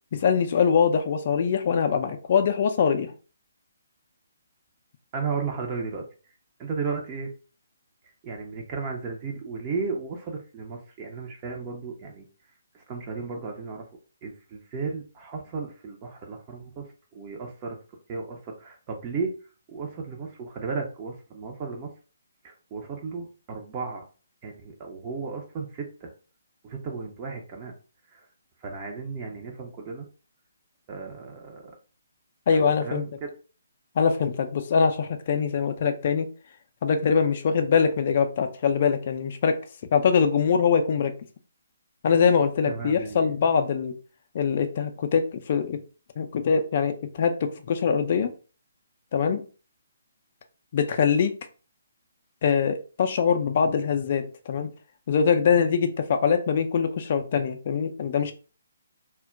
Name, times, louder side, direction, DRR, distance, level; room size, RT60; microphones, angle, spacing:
voice 1, 0.1-3.1 32.5-33.0 34.0-36.3 36.8-39.6 39.9-41.1 42.0-43.9 44.3-45.8 46.2-48.3 49.1-49.4 50.7-51.3 52.4-54.7 55.1-58.3, left 6 dB, 40° left, 0.4 m, -23 dB
voice 2, 5.1-6.0 6.6-7.3 8.2-12.3 12.7-13.9 14.2-16.9 17.1-17.8 18.1-19.3 19.7-21.9 22.4-24.1 24.4-26.1 26.6-27.7 28.1-28.3 28.6-30.1 30.9-31.7 32.5-33.3 42.7-43.3, right 4 dB, 25° right, 0.5 m, -34 dB
2.2 x 2.1 x 3.6 m
figure-of-eight pair, 135°, 0 cm